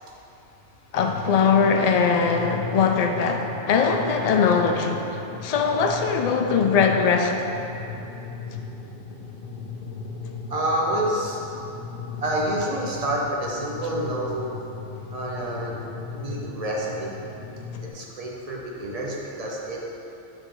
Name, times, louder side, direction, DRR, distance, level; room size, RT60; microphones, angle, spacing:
voice 1, 0.9-7.4, left 5 dB, 75° left, 3 dB, 0.3 m, -21 dB
sound 1, 1.0-17.9, left 5 dB, 60° left, 0.7 m, -37 dB
voice 2, 10.5-11.4 12.2-14.5 15.1-15.7 16.1-17.1 17.9-19.9, right 1 dB, 35° right, -3 dB, 0.8 m, -28 dB
6.7 x 4.8 x 3.8 m, 2.9 s
omnidirectional pair, 1.2 m